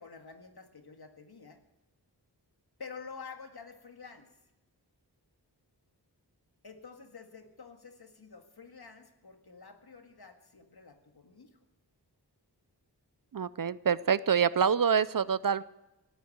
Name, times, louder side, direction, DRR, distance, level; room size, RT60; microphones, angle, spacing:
voice 1, 0.0-1.6 2.8-4.3 6.6-11.6, left 5 dB, 65° left, 6 dB, 1.8 m, -49 dB
voice 2, 13.3-15.6, right 7 dB, 55° right, 18 dB, 0.5 m, -26 dB
17.5 x 8.4 x 7.8 m, 0.96 s
wide cardioid pair, 65°, 41 cm